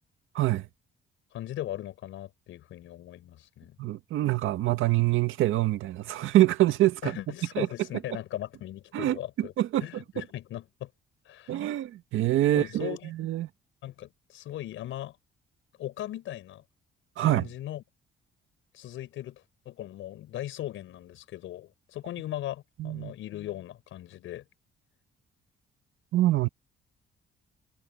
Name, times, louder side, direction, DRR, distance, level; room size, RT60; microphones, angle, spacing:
voice 1, 0.3-0.7 3.8-7.2 7.5-7.7 8.9-10.0 11.5-13.5 17.2-17.5 22.8-23.1 26.1-26.5, right 15 dB, 85° right, 1.7 m, -25 dB
voice 2, 1.3-3.8 7.0-9.5 9.8-10.9 11.2-11.6 12.5-13.1 13.8-15.2 15.8-16.6 17.2-17.8 18.7-24.4, left 13 dB, 85° left, 6.2 m, -38 dB
cardioid pair, 90°, 20 cm